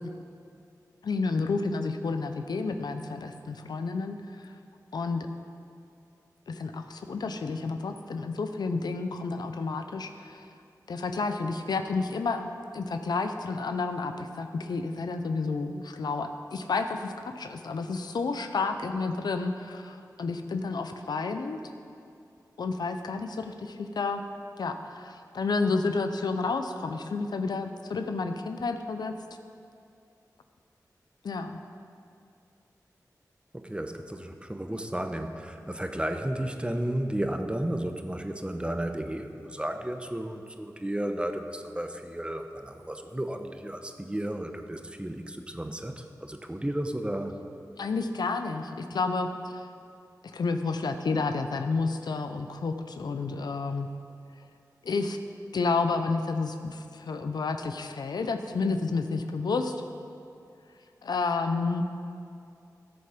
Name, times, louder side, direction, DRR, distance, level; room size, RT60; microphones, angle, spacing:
voice 1, 1.0-4.5 4.9-5.3 6.5-10.5 10.9-12.5 12.7-21.6 22.6-24.2 24.6-29.1 31.2-31.6 47.8-49.7 50.2-53.9 54.8-55.2 55.5-59.7 61.0-61.8, left 4 dB, 80° left, 7 dB, 0.6 m, -30 dB
voice 2, 33.5-47.3, right 1 dB, 15° right, 6 dB, 0.9 m, -33 dB
13.5 x 6.8 x 5.1 m, 2.5 s
cardioid pair, 40°, 7 cm